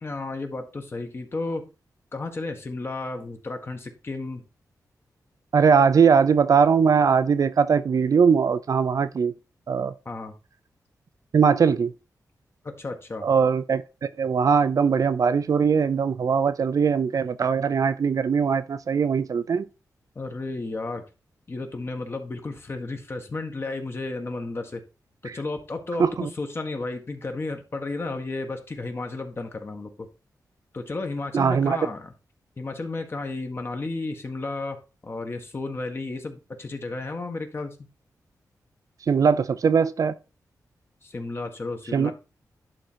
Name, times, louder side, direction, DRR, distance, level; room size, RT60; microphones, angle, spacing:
voice 1, 0.0-1.7 2.1-4.4 10.0-10.3 12.6-13.3 20.1-21.0 21.5-24.8 25.2-26.0 26.4-30.1 30.7-32.1 32.6-34.8 35.0-37.7 41.0-42.1, left 3 dB, 35° left, 1.7 m, -33 dB
voice 2, 5.5-9.3 9.7-9.9 11.3-11.9 13.2-13.8 14.2-19.7 26.0-26.3 31.3-31.8 39.1-40.1 41.9-42.1, right 6 dB, 60° right, 0.6 m, -20 dB
11.0 x 3.9 x 4.6 m
wide cardioid pair, 110°, 7 cm